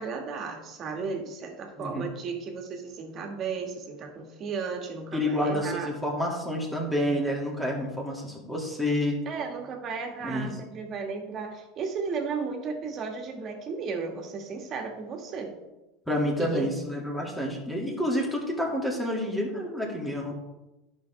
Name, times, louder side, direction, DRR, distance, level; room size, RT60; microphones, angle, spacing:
voice 1, 0.0-5.9 9.3-15.6 16.4-16.7, right 5 dB, 40° right, 3 dB, 1.8 m, -34 dB
voice 2, 1.8-2.1 5.1-9.2 10.2-10.6 16.1-20.3, left 1 dB, 5° left, -2 dB, 2.4 m, -29 dB
11.5 x 5.6 x 3.5 m, 1.0 s
supercardioid pair, 110°, 0 cm